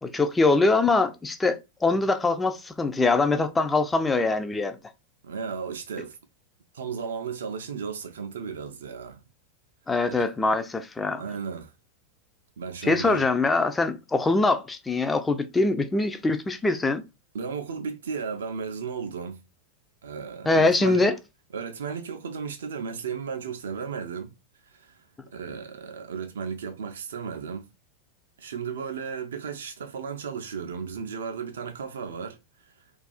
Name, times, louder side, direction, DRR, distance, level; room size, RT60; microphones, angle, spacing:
voice 1, 0.0-4.8 9.9-11.2 12.8-17.0 20.5-21.2, left 3 dB, 10° left, 0.3 m, -23 dB
voice 2, 5.2-6.2 6.7-9.2 10.0-10.3 11.2-11.7 12.6-13.2 17.3-19.4 20.0-21.0 21.5-24.3 24.6-25.0 25.3-27.7 28.4-32.4 32.7-32.8, right 6 dB, 65° right, 0.3 m, -34 dB
2.3 x 2.3 x 2.4 m
figure-of-eight pair, 90°, 0 cm